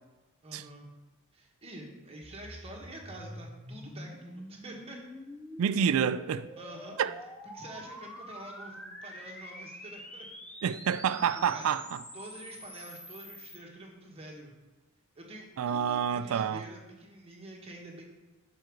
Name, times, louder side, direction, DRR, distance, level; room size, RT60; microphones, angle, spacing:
voice 1, 0.4-0.9 1.3-5.0 6.6-7.0 7.4-10.3 11.1-11.7 12.1-14.5 15.1-18.0, right 1 dB, 25° right, 1.3 m, -47 dB
sound 1, 2.2-13.6, equal, 5° left, 0.6 m, -46 dB
voice 2, 5.6-6.5 7.0-7.1 10.6-12.0 15.6-16.6, right 7 dB, 65° right, 0.3 m, -28 dB
6.8 x 4.7 x 4.6 m
head